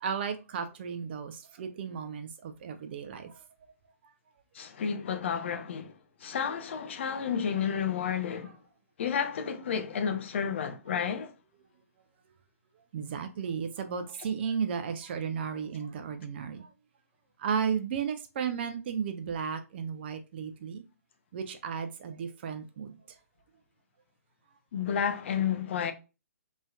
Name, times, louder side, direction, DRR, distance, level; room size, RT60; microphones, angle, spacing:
voice 1, 0.0-3.3 12.9-16.7 17.4-20.8 21.3-22.9, right 7 dB, 40° right, 0.5 m, -34 dB
voice 2, 4.5-6.0 6.2-8.6 9.0-11.3 24.7-25.9, left 7 dB, 50° left, 0.5 m, -31 dB
3.0 x 2.7 x 2.3 m
figure-of-eight pair, 130°, 8 cm